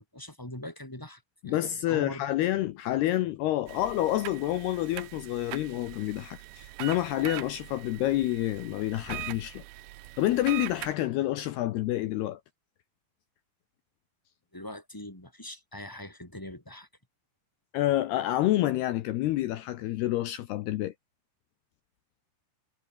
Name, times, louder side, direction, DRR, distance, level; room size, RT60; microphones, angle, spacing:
voice 1, 0.0-2.2 14.5-16.9, left 1 dB, 5° left, 2.3 m, -42 dB
voice 2, 1.4-9.6 10.2-12.4 17.7-20.9, left 14 dB, 75° left, 2.4 m, -28 dB
sound 1, 3.7-10.9, right 16 dB, 75° right, 3.2 m, -42 dB
omnidirectional pair, 5.6 m